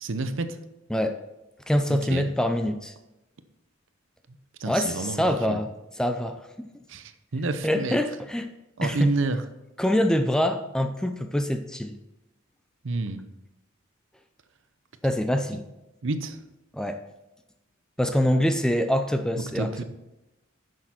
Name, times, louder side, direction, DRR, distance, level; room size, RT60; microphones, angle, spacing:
voice 1, 0.0-0.6 1.9-2.3 4.6-5.2 5.5-5.6 6.9-8.0 8.8-9.4 12.8-13.2 16.0-16.4 19.5-19.8, right 3 dB, 65° right, 10 dB, 0.7 m, -29 dB
voice 2, 1.7-2.9 4.7-5.7 6.0-6.7 7.6-8.5 8.8-9.1 9.8-12.0 15.0-15.6 16.7-17.0 18.0-19.8, equal, 5° left, 7 dB, 0.4 m, -25 dB
10.0 x 6.6 x 4.3 m, 0.96 s
head